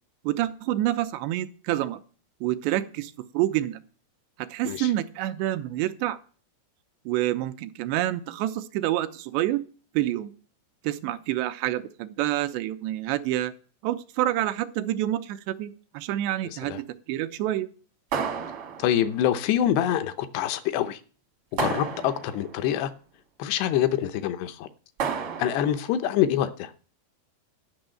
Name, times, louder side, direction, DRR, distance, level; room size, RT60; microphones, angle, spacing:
voice 1, 0.2-2.0 2.4-3.8 4.4-6.2 7.1-9.6 9.9-10.3 10.8-13.5 13.8-17.7, right 14 dB, 90° right, 10 dB, 3.0 m, -28 dB
sound 1, 18.1-19.2 21.6-22.5 25.0-25.9, right 6 dB, 65° right, 1.3 m, -31 dB
voice 2, 18.8-21.0 21.5-22.9 23.4-24.7 25.4-26.7, left 11 dB, 80° left, 10 dB, 2.9 m, -25 dB
11.5 x 6.3 x 9.1 m, 0.41 s
omnidirectional pair, 4.9 m